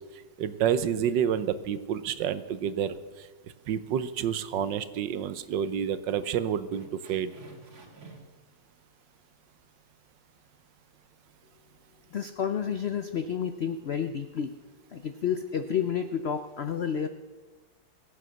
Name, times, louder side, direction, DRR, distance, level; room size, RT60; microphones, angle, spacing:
voice 1, 0.4-3.0 3.7-7.3, right 8 dB, 75° right, 13 dB, 1.4 m, -29 dB
sound 1, 3.6-4.3 4.6-4.8 5.4-5.5 5.8-5.9 6.7-8.4, right 3 dB, 60° right, 2.6 m, -51 dB
voice 2, 12.1-14.5 14.9-17.1, left 8 dB, 75° left, 9 dB, 0.5 m, -30 dB
22.5 x 8.2 x 6.3 m, 1.3 s
omnidirectional pair, 2.0 m